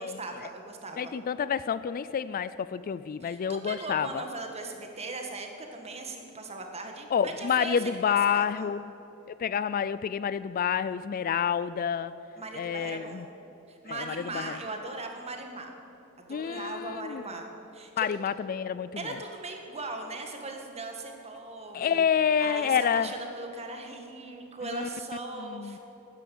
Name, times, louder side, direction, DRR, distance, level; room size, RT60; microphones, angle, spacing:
voice 1, 0.0-1.1 3.2-8.7 12.4-13.3 13.7-15.7 16.2-18.1 19.0-22.0 22.4-25.8, right 2 dB, 30° right, 3 dB, 1.7 m, -39 dB
voice 2, 1.0-4.2 7.1-8.8 9.3-12.1 12.5-13.3 13.9-14.5 16.3-17.2 18.0-19.1 21.7-23.1 24.7-24.9 25.4-25.8, left 7 dB, 40° left, 16 dB, 0.3 m, -28 dB
12.5 x 10.0 x 9.4 m, 3.0 s
head